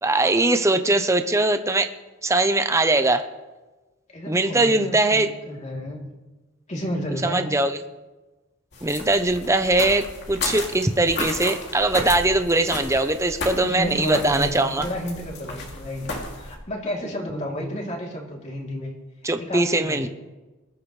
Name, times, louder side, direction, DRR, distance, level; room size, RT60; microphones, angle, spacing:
voice 1, 0.0-1.9 2.2-3.2 4.3-5.3 7.2-7.7 8.8-14.8 19.2-20.1, right 2 dB, 15° right, 8 dB, 0.8 m, -21 dB
voice 2, 4.1-6.1 6.7-7.4 13.6-18.9 19.4-20.1, equal, 35° left, -2 dB, 3.2 m, -31 dB
sound 1, 8.7-16.6, left 2 dB, 55° left, 2.8 m, -33 dB
22.0 x 12.0 x 3.3 m, 1.2 s
head